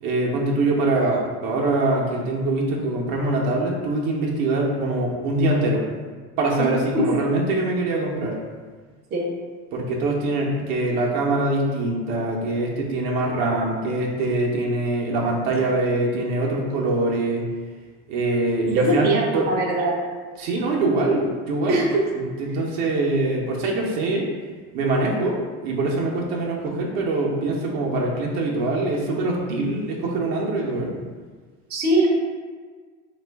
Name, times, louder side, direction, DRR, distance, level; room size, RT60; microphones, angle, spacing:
voice 1, 0.0-5.8 6.4-8.4 9.7-17.4 18.1-19.1 19.3-19.5 20.4-21.8 22.2-24.3 24.7-30.9, right 2 dB, 65° right, -2 dB, 0.7 m, -23 dB
voice 2, 18.7-20.0 21.7-22.0 31.7-32.1, right 2 dB, 30° right, -2 dB, 0.6 m, -21 dB
3.0 x 2.4 x 3.3 m, 1.5 s
supercardioid pair, 125°, 31 cm